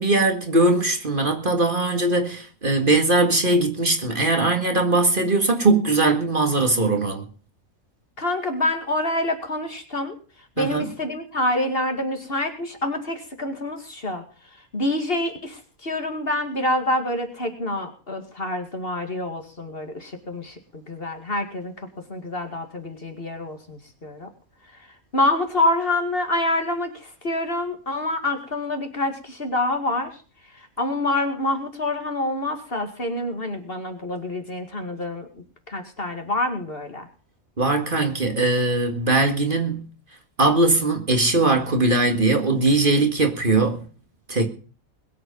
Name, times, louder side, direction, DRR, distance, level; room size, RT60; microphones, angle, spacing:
voice 1, 0.0-7.2 10.6-10.9 37.6-39.8 40.4-43.8 44.3-44.5, right 2 dB, 40° right, 2.1 m, -20 dB
voice 2, 8.2-10.1 10.6-14.2 14.7-21.7 22.1-24.3 25.1-30.1 30.5-35.3 35.7-37.1, left 1 dB, 45° left, 2.5 m, -26 dB
21.5 x 8.0 x 5.4 m
omnidirectional pair, 1.4 m